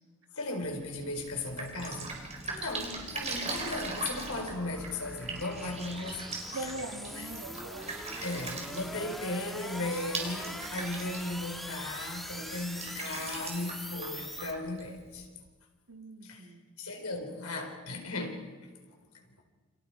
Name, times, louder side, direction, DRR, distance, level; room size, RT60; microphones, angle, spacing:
voice 1, 0.3-2.2 2.5-6.7 7.1-7.3 8.2-15.3 16.2-18.5 19.1-19.3, left 2 dB, 80° left, 3 dB, 4.5 m, -37 dB
sound 1, 0.6-12.5, equal, 25° left, 6.1 m, -57 dB
sound 2, 1.1-14.5, equal, ahead, 1.8 m, -44 dB
Drip, 1.2-15.3, right 4 dB, 30° right, 4.5 m, -41 dB
voice 2, 6.5-8.0 15.9-16.8, right 2 dB, 70° right, 3 dB, 2.4 m, -42 dB
29.0 x 29.0 x 4.9 m, 1.4 s
head